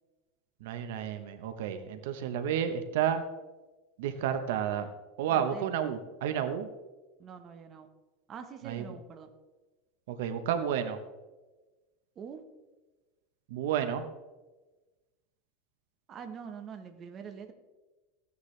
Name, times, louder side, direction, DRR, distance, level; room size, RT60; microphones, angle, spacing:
voice 1, 0.6-3.2 4.0-4.9 5.2-6.7 8.6-8.8 10.1-11.0 13.5-14.1, right 9 dB, 75° right, 9 dB, 0.9 m, -31 dB
voice 2, 5.3-5.7 7.2-7.9 8.3-9.3 12.2-12.4 16.1-17.5, right 7 dB, 25° right, 6 dB, 1.0 m, -44 dB
15.0 x 9.5 x 3.3 m, 1.2 s
supercardioid pair, 165°, 0 cm